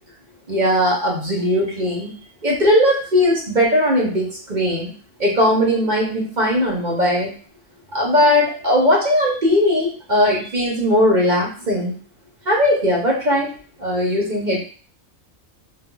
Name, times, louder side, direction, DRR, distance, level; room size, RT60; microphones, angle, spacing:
voice 1, 0.5-2.1 2.4-4.9 5.2-7.3 7.9-12.0 12.5-13.5 13.8-14.6, left 1 dB, 45° right, -3 dB, 0.7 m, -18 dB
3.7 x 2.5 x 2.2 m, 0.43 s
omnidirectional pair, 1.4 m